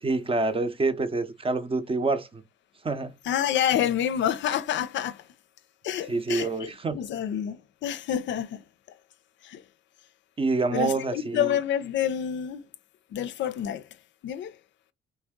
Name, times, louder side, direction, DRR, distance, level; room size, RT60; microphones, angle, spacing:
voice 1, 0.0-2.4 2.8-3.1 6.1-7.0 10.4-11.6, right 3 dB, 30° right, 0.6 m, -27 dB
voice 2, 3.3-5.3 5.8-8.6 9.4-9.6 10.7-12.7 13.1-13.8 14.2-14.6, left 10 dB, 70° left, 0.5 m, -28 dB
3.3 x 2.6 x 3.5 m
cardioid pair, 90°, 20 cm